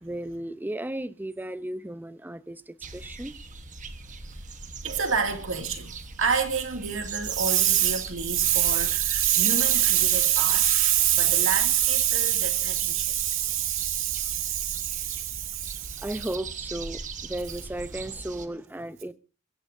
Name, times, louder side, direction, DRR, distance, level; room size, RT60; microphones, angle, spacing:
voice 1, 0.0-3.4 13.7-13.8 14.3-14.4 16.0-19.1, right 1 dB, 10° right, 0.6 m, -35 dB
sound 1, 2.8-18.5, right 4 dB, 35° right, 1.2 m, -40 dB
voice 2, 4.3-16.0, right 10 dB, 65° right, 2.3 m, -25 dB
21.5 x 16.5 x 2.6 m
head